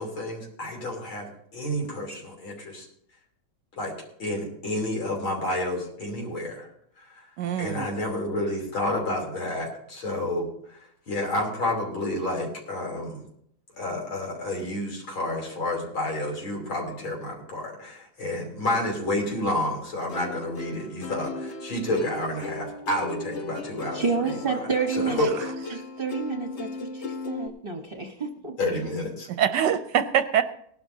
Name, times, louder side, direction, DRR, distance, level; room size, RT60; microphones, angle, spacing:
voice 1, 0.0-2.9 3.8-3.9 4.2-6.7 7.0-7.3 7.6-10.8 11.1-13.2 13.8-24.6 24.9-25.5 28.6-29.3, left 1 dB, 90° left, 0 dB, 4.1 m, -30 dB
voice 2, 7.4-7.9 29.4-30.4, right 9 dB, 70° right, 10 dB, 1.1 m, -23 dB
Plucked string instrument, 20.1-27.5, left 3 dB, 50° left, 0.8 m, -37 dB
voice 3, 23.9-25.3 25.7-28.6, right 5 dB, 40° right, 3 dB, 0.9 m, -29 dB
19.0 x 12.0 x 2.7 m, 0.69 s
omnidirectional pair, 2.1 m